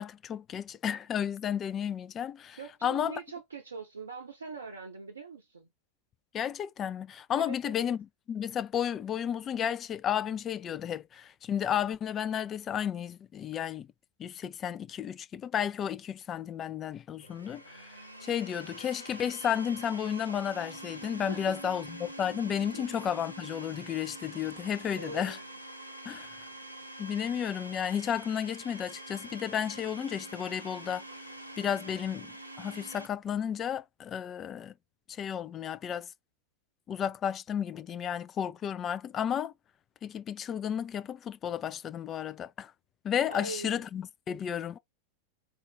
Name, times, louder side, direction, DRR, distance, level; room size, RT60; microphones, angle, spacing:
voice 1, 0.0-3.2 6.3-8.0 8.3-13.9 14.2-17.9 18.2-25.4 26.1-26.4 27.0-31.0 31.6-34.7 35.1-36.1 36.9-39.5 40.0-42.7 43.0-44.8, left 9 dB, 25° left, 0.4 m, -33 dB
voice 2, 2.6-5.7 7.4-7.9 21.3-21.6 22.7-22.8 24.9-25.5 43.3-43.8, right 4 dB, 70° right, 0.6 m, -42 dB
Domestic sounds home sounds, 17.2-33.1, right 1 dB, 90° left, 0.8 m, -45 dB
3.8 x 2.5 x 3.6 m
figure-of-eight pair, 90°, 0 cm